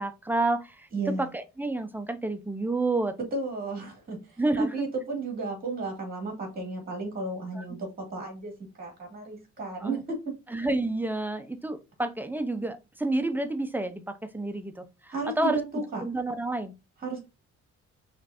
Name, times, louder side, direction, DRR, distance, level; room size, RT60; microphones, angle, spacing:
voice 1, 0.0-3.2 4.4-4.9 7.5-7.6 9.8-10.0 10.5-15.6 16.0-16.7, right 2 dB, 5° right, 0.6 m, -29 dB
voice 2, 0.9-1.3 3.3-8.5 8.8-10.3 15.1-16.0 17.0-17.3, right 3 dB, 30° right, 2.2 m, -34 dB
5.1 x 3.3 x 2.5 m
cardioid pair, 90°, 30 cm